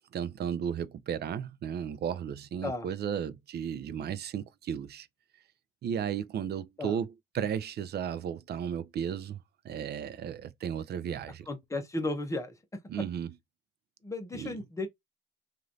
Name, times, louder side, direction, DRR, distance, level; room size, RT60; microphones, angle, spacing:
voice 1, 0.1-5.1 5.8-9.4 9.6-11.5 12.9-13.3 14.3-14.6, right 8 dB, 55° right, 0.5 m, -34 dB
voice 2, 11.5-12.5 14.0-14.9, left 2 dB, 15° left, 0.9 m, -34 dB
3.1 x 2.6 x 2.6 m
cardioid pair, 90°, 20 cm